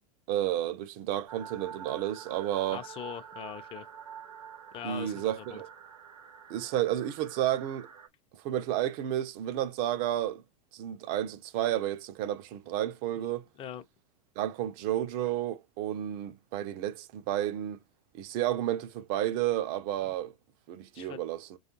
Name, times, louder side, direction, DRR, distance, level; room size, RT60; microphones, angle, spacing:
voice 1, 0.3-2.8 4.8-5.7 6.5-7.9 8.4-10.4 10.7-13.4 14.4-17.8 18.1-20.3 20.7-21.6, right 12 dB, 45° right, 0.5 m, -31 dB
sound 1, 1.3-8.1, right 8 dB, 80° right, 0.9 m, -47 dB
voice 2, 2.7-3.9 4.7-5.6 13.1-13.3 13.6-13.8 20.9-21.2, left 10 dB, 25° left, 0.5 m, -41 dB
4.7 x 2.3 x 2.9 m
hypercardioid pair, 100°, 20 cm